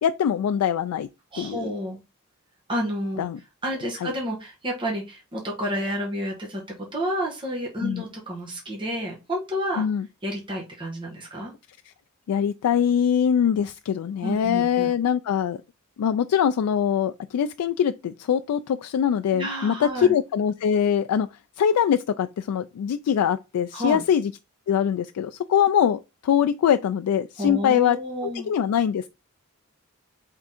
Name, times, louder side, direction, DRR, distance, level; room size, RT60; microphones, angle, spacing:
voice 1, 0.0-1.1 1.4-1.7 3.2-3.4 4.0-4.1 7.8-8.0 9.8-10.1 12.3-15.6 16.0-24.3 24.7-28.0 28.5-29.1, left 8 dB, 85° left, 0.3 m, -23 dB
voice 2, 1.3-2.0 2.7-3.2 3.6-6.6 6.9-9.8 10.2-11.5 14.2-14.9 19.3-20.1 23.7-24.0 27.4-28.5, equal, 20° right, 1.1 m, -30 dB
3.6 x 3.5 x 4.1 m
head